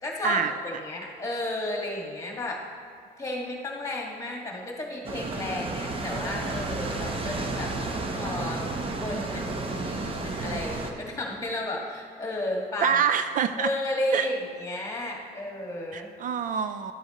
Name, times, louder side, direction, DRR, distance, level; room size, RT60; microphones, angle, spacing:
voice 1, 0.0-2.6 3.2-7.8 8.2-8.7 9.0-13.0 13.6-16.1, left 1 dB, 20° left, -1 dB, 1.8 m, -33 dB
sound 1, 5.0-10.9, right 2 dB, 35° right, 0.9 m, -32 dB
voice 2, 9.6-10.1 12.8-13.7 14.1-14.3 15.9-16.9, right 7 dB, 50° right, 10 dB, 0.4 m, -27 dB
11.5 x 7.8 x 3.0 m, 2.3 s
cardioid pair, 110°, 17 cm